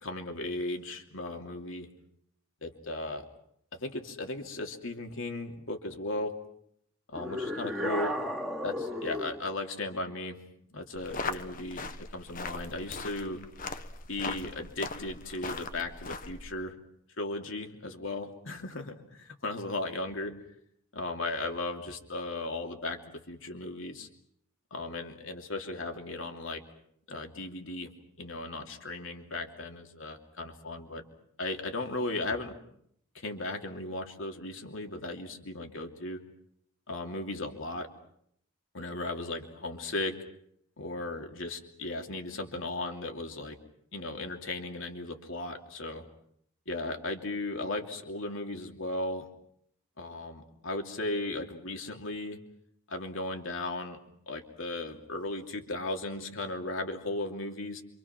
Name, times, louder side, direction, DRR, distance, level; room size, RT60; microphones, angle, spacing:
voice 1, 0.0-1.9 2.6-3.2 3.7-6.3 7.1-8.2 8.6-10.4 10.7-13.4 14.1-16.8 17.2-20.3 20.9-24.1 24.7-26.6 27.1-27.9 28.2-31.0 31.4-32.6 33.1-36.2 36.9-37.9 38.7-40.2 40.8-43.6 43.9-46.0 46.7-49.3 50.0-52.4 52.9-54.0 54.3-57.8, left 2 dB, 70° left, 4 dB, 3.0 m, -36 dB
sound 1, 7.1-9.5, left 1 dB, ahead, 2.5 m, -34 dB
sound 2, 10.9-16.5, left 3 dB, 40° left, 1.3 m, -39 dB
28.0 x 26.0 x 6.0 m, 0.71 s
head